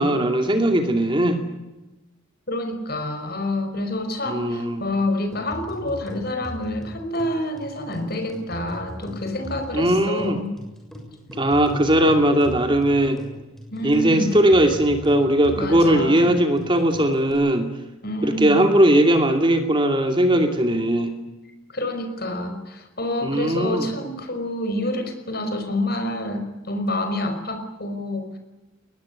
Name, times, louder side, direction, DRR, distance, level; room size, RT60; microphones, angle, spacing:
voice 1, 0.0-1.4 4.3-4.8 9.7-10.4 11.4-13.2 13.8-17.7 18.2-21.1 23.2-23.9, right 1 dB, 25° right, 6 dB, 2.6 m, -19 dB
voice 2, 2.5-10.5 13.7-14.3 15.6-16.3 18.0-18.6 21.7-28.4, left 1 dB, 45° left, 7 dB, 5.2 m, -28 dB
sound 1, 5.3-17.3, equal, ahead, 7.0 m, -39 dB
22.5 x 20.0 x 9.5 m, 1.0 s
head